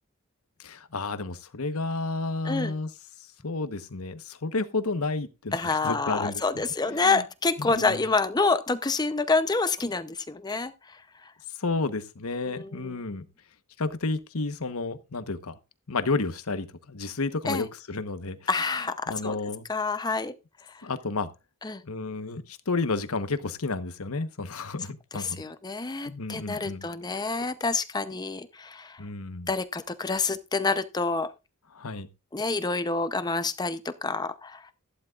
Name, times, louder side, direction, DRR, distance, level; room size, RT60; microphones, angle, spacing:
voice 1, 0.6-2.9 3.4-6.4 6.9-7.2 7.6-8.0 11.6-13.3 13.8-15.6 15.9-18.4 18.7-19.7 20.8-21.3 21.8-25.4 26.1-26.9 29.0-29.5 31.7-32.1, left 3 dB, 75° left, 1.1 m, -31 dB
voice 2, 5.5-10.7 12.4-13.0 17.5-17.7 18.5-19.4 19.7-20.3 21.6-21.8 25.1-29.0 29.5-31.3 32.3-34.6, left 3 dB, 20° left, 0.6 m, -28 dB
14.5 x 11.5 x 2.4 m
head